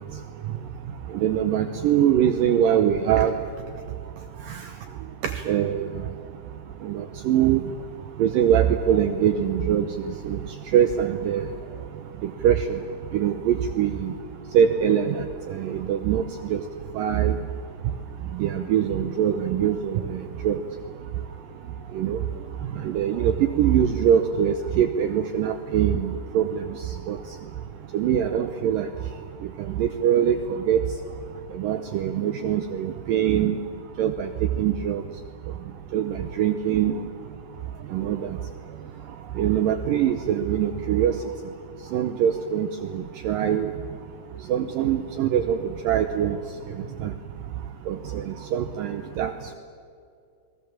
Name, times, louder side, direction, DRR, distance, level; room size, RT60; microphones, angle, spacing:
voice 1, 1.1-3.4 4.5-4.6 5.2-5.9 6.8-7.6 8.2-9.8 10.3-10.4 10.7-11.4 12.4-12.6 13.1-14.1 14.5-15.2 15.6-16.2 16.5-16.6 17.0-17.4 18.4-20.2 20.4-20.6 22.0-22.2 22.8-26.6 27.1-27.2 27.9-28.9 29.8-30.4 30.7-30.8 31.6-33.6 34.0-34.3 34.6-35.0 35.9-36.9 37.9-38.2 39.4-41.1 41.9-42.7 42.9-43.7 44.5-45.6 45.9-46.4 47.0-47.1 47.9-49.3, right 9 dB, 75° right, 8 dB, 2.3 m, -22 dB
29.5 x 21.5 x 7.3 m, 2.4 s
omnidirectional pair, 4.6 m